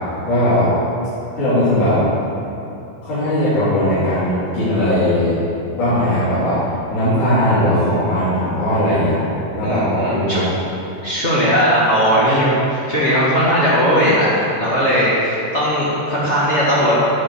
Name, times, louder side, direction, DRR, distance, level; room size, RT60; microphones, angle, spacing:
voice 1, 0.3-0.7 1.4-2.0 3.0-5.4 5.8-6.6 6.9-9.2 9.5-10.4, left 1 dB, 75° left, -14 dB, 4.5 m, -18 dB
voice 2, 9.6-10.4 11.0-17.0, equal, 30° left, -9 dB, 1.4 m, -17 dB
16.5 x 5.6 x 4.7 m, 2.7 s
omnidirectional pair, 3.7 m